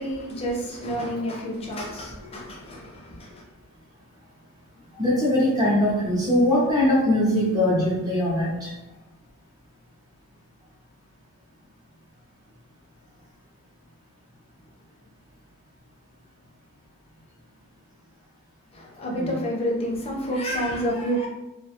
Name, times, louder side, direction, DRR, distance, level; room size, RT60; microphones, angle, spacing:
voice 1, 0.0-3.4 18.7-21.3, equal, 25° left, -2 dB, 0.5 m, -29 dB
voice 2, 5.0-8.7 19.1-19.4, left 1 dB, 15° right, -7 dB, 0.6 m, -21 dB
2.3 x 2.2 x 2.8 m, 1.0 s
head